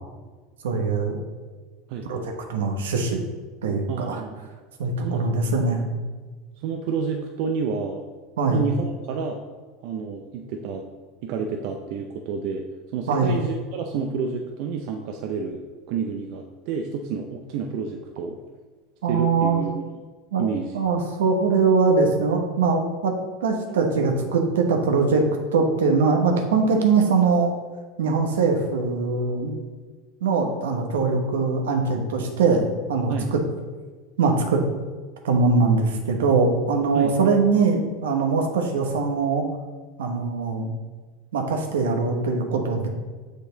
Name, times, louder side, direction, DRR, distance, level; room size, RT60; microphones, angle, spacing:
voice 1, 0.6-1.2 2.1-3.2 3.6-4.2 4.8-5.9 8.4-8.6 13.1-13.3 19.0-19.6 20.3-20.4 20.7-23.1 23.4-25.2 25.5-27.5 28.0-29.5 30.2-32.6 32.9-33.4 34.2-34.6 35.2-39.4 40.0-40.7 41.3-42.9, right 4 dB, 85° right, 3 dB, 1.0 m, -22 dB
voice 2, 3.9-4.5 5.0-5.3 6.6-8.0 8.5-9.4 9.8-10.8 11.2-12.6 12.9-15.6 15.9-18.4 19.1-20.0 20.4-20.8 33.1-33.3 36.9-37.2, right 5 dB, 65° right, 3 dB, 0.6 m, -29 dB
6.6 x 5.1 x 3.9 m, 1.4 s
hypercardioid pair, 95°, 0 cm